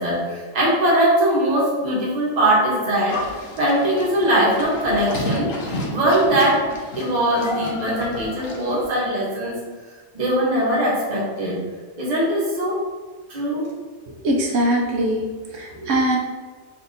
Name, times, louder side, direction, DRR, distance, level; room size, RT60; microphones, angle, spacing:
voice 1, 0.0-3.2 3.6-5.5 5.9-9.6 10.1-11.6 12.0-12.8 13.3-13.6, right 1 dB, 35° right, -5 dB, 1.0 m, -21 dB
Livestock farm animals working animals, 3.1-8.9, left 1 dB, 70° left, 1.1 m, -31 dB
voice 2, 14.2-15.2 15.6-16.2, right 1 dB, 65° right, 0 dB, 0.9 m, -21 dB
3.3 x 2.6 x 3.9 m, 1.4 s
omnidirectional pair, 1.5 m